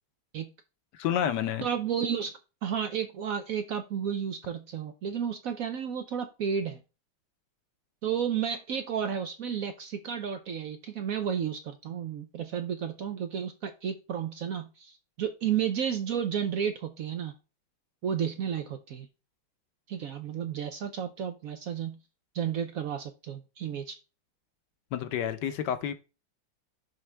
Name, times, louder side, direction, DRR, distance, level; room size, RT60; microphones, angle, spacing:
voice 1, 0.9-1.7 24.9-25.9, left 9 dB, 65° left, 1.2 m, -29 dB
voice 2, 1.6-2.3 2.6-6.8 8.0-17.3 18.0-19.1 19.9-22.0 22.3-24.0, right 8 dB, 75° right, 0.8 m, -32 dB
10.5 x 3.7 x 3.3 m
omnidirectional pair, 2.2 m